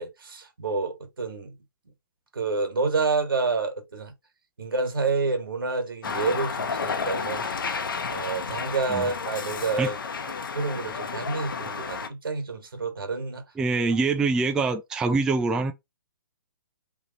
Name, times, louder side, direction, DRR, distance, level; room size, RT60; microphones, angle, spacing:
voice 1, 0.0-1.5 2.3-4.1 4.6-7.5 8.1-10.0 10.5-13.4, right 4 dB, 80° right, 1.7 m, -28 dB
sound 1, 6.0-12.1, left 5 dB, 70° left, 0.9 m, -31 dB
voice 2, 13.6-15.7, right 3 dB, 5° right, 0.3 m, -24 dB
3.5 x 3.0 x 3.9 m
hypercardioid pair, 140°, 12 cm